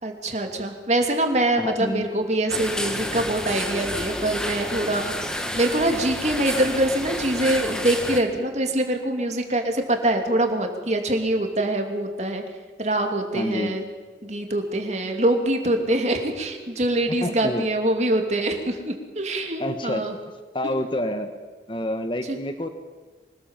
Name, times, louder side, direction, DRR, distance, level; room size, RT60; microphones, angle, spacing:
voice 1, 0.0-5.1 5.5-12.4 12.8-13.8 14.2-20.1 22.3-22.4, right 1 dB, 40° right, 4 dB, 2.7 m, -24 dB
voice 2, 1.6-2.0 13.3-13.8 17.1-17.7 19.6-20.0 20.5-21.3 21.7-22.7, left 1 dB, 30° left, 8 dB, 1.3 m, -28 dB
sound 1, 2.5-8.2, equal, 5° left, 1.6 m, -30 dB
25.5 x 19.5 x 7.4 m, 1.3 s
head